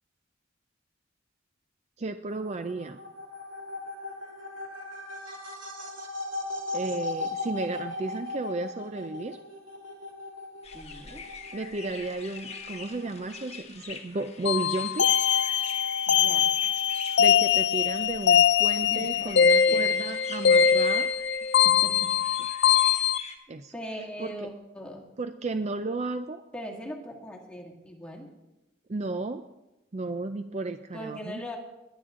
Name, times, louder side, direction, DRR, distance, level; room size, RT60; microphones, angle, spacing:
voice 1, 2.0-3.0 6.7-9.4 11.5-15.1 17.2-21.1 23.5-23.7 24.2-24.5 25.2-26.4 28.9-29.5 29.9-31.4, right 2 dB, 35° right, 9 dB, 0.5 m, -33 dB
sound 1, 2.3-13.6, left 2 dB, 80° right, 2.4 m, -38 dB
sound 2, 10.6-23.4, left 5 dB, 35° left, 1.4 m, -45 dB
voice 2, 10.7-11.2 16.1-16.5 18.8-19.8 21.6-22.4 23.7-25.1 26.5-28.3 30.9-31.6, equal, 5° left, -1 dB, 2.1 m, -40 dB
sound 3, 14.5-23.2, left 8 dB, 60° left, 0.5 m, -22 dB
20.5 x 10.5 x 3.7 m, 0.99 s
head